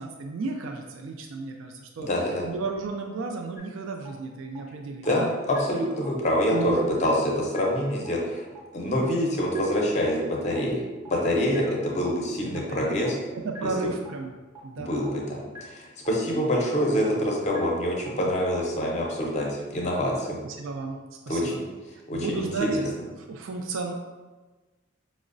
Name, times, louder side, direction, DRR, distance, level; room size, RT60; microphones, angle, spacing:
voice 1, 0.0-2.1 2.4-5.3 6.5-6.9 11.6-11.8 12.5-13.0 13.4-14.3 14.6-14.9 20.4-21.0 21.3-21.6 22.1-23.9, right 3 dB, 75° right, 2 dB, 0.3 m, -33 dB
voice 2, 2.0-2.4 5.0-8.5 8.7-13.2 13.6-13.7 14.8-20.4 21.3-21.7 22.1-22.8, equal, 35° left, -2 dB, 0.5 m, -26 dB
sound 1, 3.6-3.7 4.1-4.2 4.6-4.7 5.1-5.2 5.5-5.6 6.1-6.2 6.6-6.7 7.1-7.2 7.5-7.6 8.1-8.2 8.6-8.7 9.1-9.2 9.5-9.6 10.1-10.2 10.6-10.7 11.1-11.2 11.5-11.6 12.1-12.2 12.6-12.7 13.1-13.2 13.5-13.6 14.1-14.2 14.6-14.7 15.1-15.2 15.5-15.6 16.1-16.2 16.6-16.7 17.1-17.2 17.5-17.6 18.1-18.2 18.6-18.7 19.1-19.2, right 1 dB, 15° right, 0.5 m, -43 dB
5.2 x 2.0 x 2.5 m, 1.2 s
head